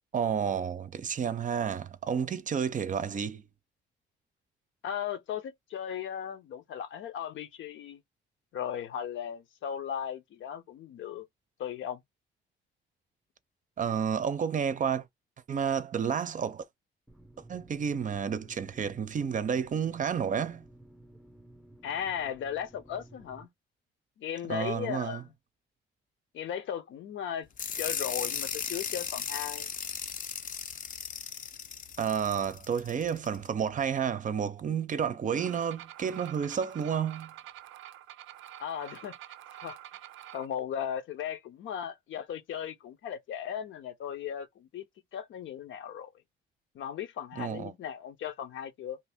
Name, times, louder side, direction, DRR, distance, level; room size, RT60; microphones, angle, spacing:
voice 1, 0.1-3.4 13.8-15.1 15.5-16.6 17.5-20.6 24.5-25.2 32.0-37.3 47.4-47.7, right 7 dB, 40° right, 0.5 m, -30 dB
voice 2, 4.8-8.0 8.5-11.3 11.6-12.0 21.8-23.5 24.2-25.2 26.3-27.5 27.8-29.7 38.6-39.1 39.6-39.8 40.3-44.8 45.1-46.1 46.7-49.0, left 9 dB, 75° left, 0.8 m, -36 dB
sound 1, 17.1-23.5, right 1 dB, ahead, 0.7 m, -54 dB
sound 2, 27.6-33.4, left 7 dB, 45° left, 0.6 m, -36 dB
sound 3, 35.3-40.5, right 13 dB, 90° right, 0.4 m, -47 dB
2.8 x 2.6 x 3.4 m
cardioid pair, 90°, 20 cm